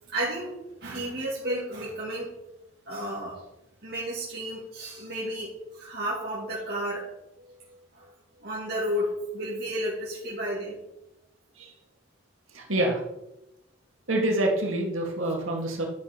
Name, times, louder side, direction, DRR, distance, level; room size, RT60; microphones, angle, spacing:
voice 1, 0.1-0.5 0.8-2.3 2.9-3.4 3.8-7.1 7.9-8.1 8.4-10.8, equal, 50° right, -7 dB, 2.5 m, -32 dB
voice 2, 12.5-13.0 14.1-15.8, right 1 dB, 85° right, 0 dB, 2.2 m, -26 dB
12.0 x 6.2 x 5.2 m, 0.89 s
head